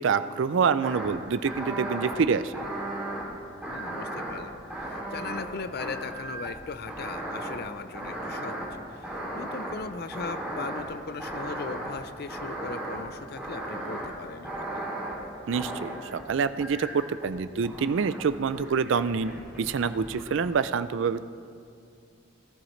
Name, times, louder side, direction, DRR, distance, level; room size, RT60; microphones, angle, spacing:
voice 1, 0.0-2.5 15.5-19.3 19.6-21.2, right 5 dB, 75° right, 13 dB, 0.4 m, -26 dB
sound 1, 0.8-1.1 1.4-2.1 2.5-3.2 3.6-5.5 5.8-6.6 6.9-7.6 7.9-8.6 9.0-9.7 10.1-10.8 11.2-11.9 12.3-13.0 13.4-14.1 14.4-15.1 15.5-16.2 16.6-17.3 17.6-18.2 18.5-20.5, right 1 dB, 5° right, 2.7 m, -36 dB
voice 2, 3.7-14.9, left 4 dB, 50° left, 11 dB, 0.5 m, -39 dB
18.5 x 12.0 x 3.2 m, 2.3 s
head